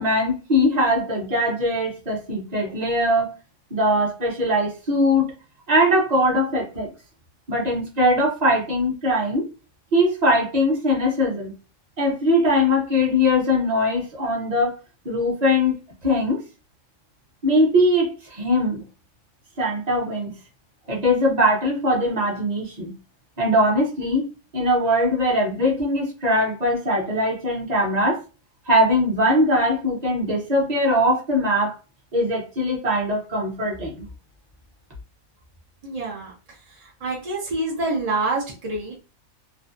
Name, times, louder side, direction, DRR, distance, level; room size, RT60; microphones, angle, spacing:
voice 1, 0.0-3.3 3.7-5.3 5.7-6.9 7.5-9.4 9.9-11.5 12.0-14.8 15.0-15.8 16.0-16.4 17.4-18.8 19.6-20.3 20.9-22.9 23.4-24.2 24.5-28.2 28.7-31.7 32.1-34.1, left 1 dB, 35° right, -3 dB, 0.7 m, -21 dB
voice 2, 35.8-36.3 36.8-39.0, right 2 dB, 60° right, -2 dB, 0.4 m, -27 dB
2.6 x 2.2 x 2.5 m, 0.32 s
omnidirectional pair, 1.5 m